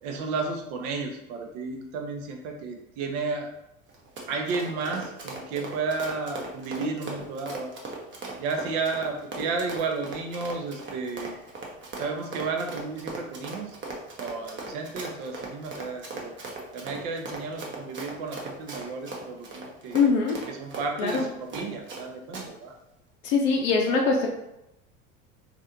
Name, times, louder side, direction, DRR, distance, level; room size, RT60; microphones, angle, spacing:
voice 1, 0.0-3.5 4.3-7.7 8.4-11.4 12.0-13.8 14.2-16.3 16.7-20.0 20.5-22.7, right 4 dB, 60° right, 3 dB, 0.8 m, -32 dB
Run, 3.9-22.0 22.3-22.5, right 3 dB, 30° right, 0.8 m, -38 dB
voice 2, 19.9-20.4 21.0-21.3 23.2-24.3, left 4 dB, 65° left, 0 dB, 0.6 m, -22 dB
3.3 x 2.5 x 2.7 m, 0.86 s
hypercardioid pair, 80°, 40 cm